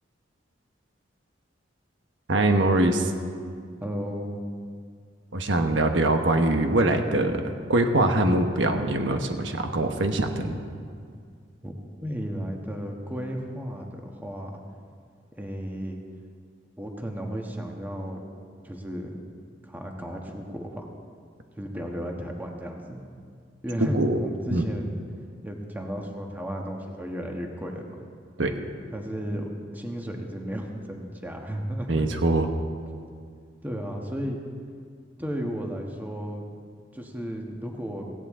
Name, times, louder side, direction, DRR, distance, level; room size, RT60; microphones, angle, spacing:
voice 1, 2.3-3.1 5.3-10.6 23.9-24.2 24.5-24.7 28.4-28.6 31.9-32.5, right 2 dB, 90° right, 5 dB, 1.2 m, -23 dB
voice 2, 3.8-4.4 11.6-14.6 15.4-16.0 16.8-18.2 18.6-19.2 19.6-20.9 21.6-23.0 23.6-25.0 25.4-28.0 28.9-32.1 33.6-34.4 35.2-36.4 36.9-38.1, equal, 10° right, 1 dB, 1.4 m, -34 dB
17.0 x 16.5 x 3.7 m, 2.1 s
head